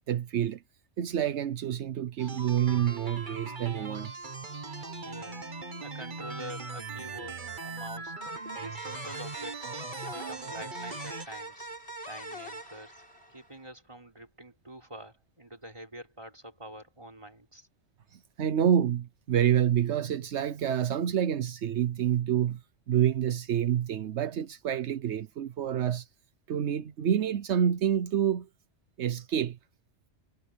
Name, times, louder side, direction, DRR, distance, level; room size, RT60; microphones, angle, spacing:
voice 1, 0.1-0.6 1.0-4.1 18.1-22.6 22.9-26.1 26.5-28.5 29.0-29.6, right 9 dB, 80° right, 1.1 m, -28 dB
sound 1, 2.2-11.3, right 3 dB, 45° right, 1.6 m, -40 dB
voice 2, 5.0-5.5 5.8-8.2 8.5-9.7 10.1-11.7 12.1-13.0 13.3-17.7, right 1 dB, 25° right, 4.4 m, -46 dB
sound 2, 8.2-13.6, right 1 dB, 65° left, 6.2 m, -43 dB
omnidirectional pair, 1.1 m